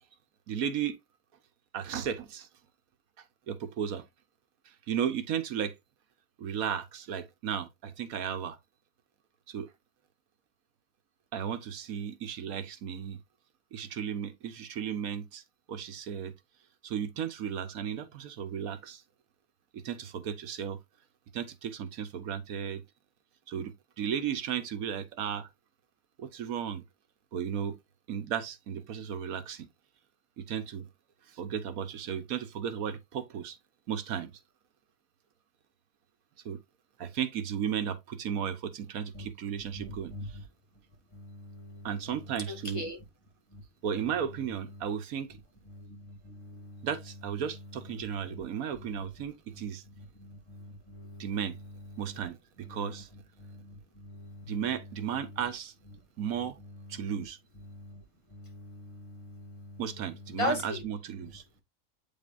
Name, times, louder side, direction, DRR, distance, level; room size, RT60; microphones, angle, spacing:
voice 1, 0.5-1.0 1.7-2.5 3.5-4.0 4.6-5.8 6.4-8.6 9.5-9.7 11.3-13.2 13.7-15.4 15.7-16.3 16.8-19.0 19.7-20.8 21.3-22.8 23.5-25.5 26.2-26.8 27.3-27.8 28.1-29.7 30.4-30.9 31.3-33.6 33.9-34.3 36.4-36.6 37.0-40.4 41.8-42.8 43.8-45.4 46.8-49.8 51.2-51.6 52.0-53.1 54.4-55.7 56.2-56.6 56.9-57.4 59.8-61.4, right 8 dB, 85° right, 1.4 m, -34 dB
voice 2, 41.1-41.9 42.5-43.0 43.5-43.6 45.7-46.9 50.2-51.2 53.4-54.5 57.7-58.0 58.3-59.8 60.4-60.8, left 1 dB, 20° left, 2.2 m, -39 dB
8.4 x 5.3 x 2.5 m
omnidirectional pair, 1.5 m